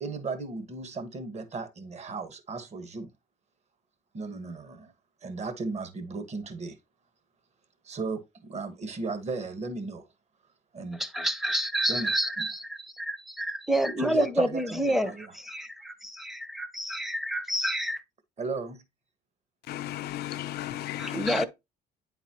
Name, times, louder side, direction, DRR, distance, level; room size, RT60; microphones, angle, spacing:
voice 1, 0.0-3.1 4.1-4.9 5.2-6.8 7.8-10.1 10.7-11.0 11.9-12.1 12.4-12.5 14.0-15.3 18.4-18.8, right 3 dB, 40° right, 1.2 m, -35 dB
voice 2, 10.9-18.0 21.0-21.5, right 1 dB, ahead, 0.7 m, -29 dB
voice 3, 19.6-21.4, left 13 dB, 70° left, 0.6 m, -34 dB
9.1 x 4.0 x 2.9 m
cardioid pair, 110°, 17 cm